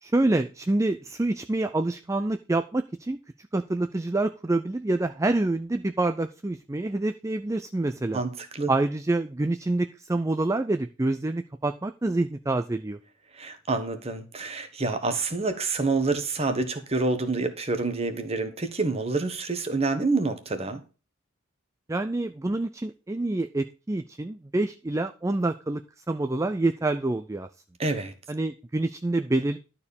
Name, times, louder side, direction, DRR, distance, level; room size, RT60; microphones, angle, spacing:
voice 1, 0.0-3.2 3.5-8.2 8.7-13.0 21.9-25.8 26.1-27.5 28.3-29.6, right 2 dB, 15° right, 0.4 m, -27 dB
voice 2, 8.1-8.7 13.3-20.8 27.8-28.1, right 3 dB, 30° right, 1.3 m, -27 dB
12.0 x 4.4 x 7.0 m
head